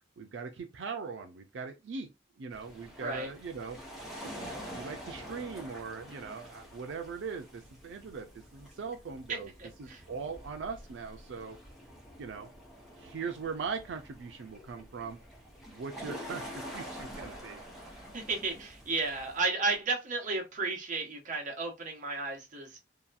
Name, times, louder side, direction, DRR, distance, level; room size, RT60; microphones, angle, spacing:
voice 1, 0.2-2.1 2.4-3.8 4.2-9.5 9.8-11.6 12.2-12.5 13.0-15.2 15.7-17.6, right 5 dB, 90° right, 0.4 m, -40 dB
sound 1, 2.5-19.4, equal, ahead, 0.8 m, -47 dB
voice 2, 3.0-3.3 9.3-10.0 18.1-22.8, right 3 dB, 45° right, 0.9 m, -33 dB
2.8 x 2.2 x 2.4 m
head